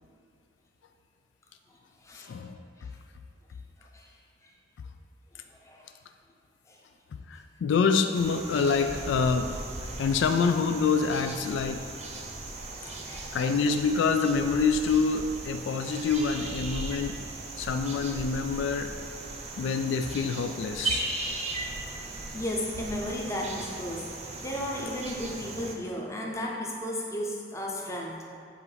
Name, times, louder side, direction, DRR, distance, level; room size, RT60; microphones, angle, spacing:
voice 1, 7.3-11.9 13.3-17.2 17.6-18.9 19.6-21.1, left 5 dB, 80° left, 8 dB, 0.3 m, -26 dB
sound 1, 8.1-25.7, right 2 dB, 40° right, 0.7 m, -38 dB
voice 2, 12.8-13.4 22.3-24.1 24.4-28.1, left 1 dB, 15° left, -2 dB, 0.7 m, -34 dB
7.6 x 2.6 x 4.9 m, 2.3 s
head